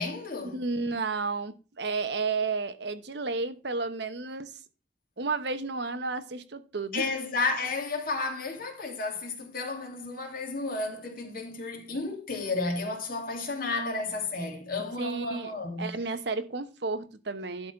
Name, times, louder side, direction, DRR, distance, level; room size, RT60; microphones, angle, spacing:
voice 1, 0.0-0.6 6.9-15.9, left 3 dB, 50° left, 2.5 m, -32 dB
voice 2, 0.5-4.6 5.2-7.1 15.0-17.7, right 4 dB, 65° right, 0.9 m, -32 dB
11.5 x 4.1 x 5.7 m
head